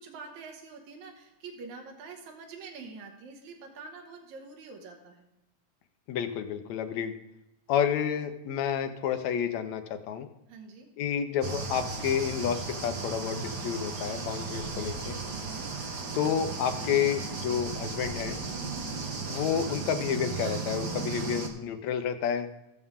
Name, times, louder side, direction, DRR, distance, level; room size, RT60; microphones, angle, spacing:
voice 1, 0.0-5.3 10.5-10.9 15.3-15.7 18.5-18.9, right 4 dB, 75° right, 1 dB, 2.7 m, -45 dB
voice 2, 6.1-7.1 7.7-10.3 11.0-15.2 16.1-18.4 19.3-22.5, left 8 dB, 75° left, 7 dB, 2.1 m, -30 dB
sound 1, 11.4-21.5, right 4 dB, 50° right, 1.4 m, -35 dB
17.0 x 7.0 x 3.7 m, 0.90 s
omnidirectional pair, 3.3 m